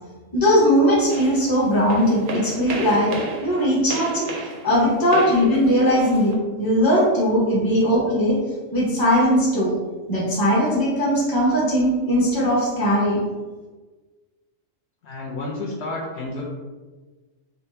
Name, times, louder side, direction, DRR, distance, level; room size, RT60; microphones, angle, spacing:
voice 1, 0.3-3.1 3.4-4.3 4.6-6.3 6.6-8.4 8.7-9.7 10.1-13.2, equal, 20° left, -6 dB, 0.8 m, -19 dB
sound 1, 1.1-6.4, right 3 dB, 60° right, 0.5 m, -33 dB
voice 2, 15.0-16.4, left 2 dB, 65° left, -5 dB, 0.8 m, -30 dB
3.8 x 2.2 x 2.6 m, 1.3 s
omnidirectional pair, 1.3 m